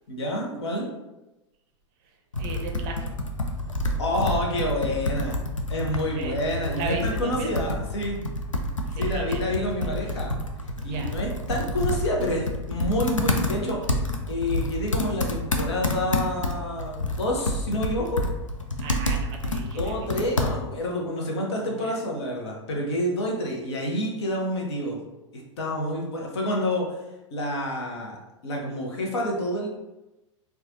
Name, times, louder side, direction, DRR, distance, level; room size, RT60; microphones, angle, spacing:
voice 1, 0.1-0.9 4.0-5.4 5.7-8.2 9.0-10.3 10.8-13.9 14.3-18.2 19.8-25.0 25.3-26.9 27.3-28.2 28.4-29.7, left 1 dB, 60° left, -1 dB, 0.9 m, -28 dB
voice 2, 2.0-3.2 6.1-6.4 6.7-7.6 8.9-10.1 10.8-11.2 18.8-20.2 21.7-22.0, right 4 dB, 40° right, 3 dB, 0.5 m, -37 dB
Computer keyboard, 2.3-20.9, left 1 dB, 90° left, 0.4 m, -29 dB
4.4 x 2.3 x 2.6 m, 1.0 s
figure-of-eight pair, 95°, 16 cm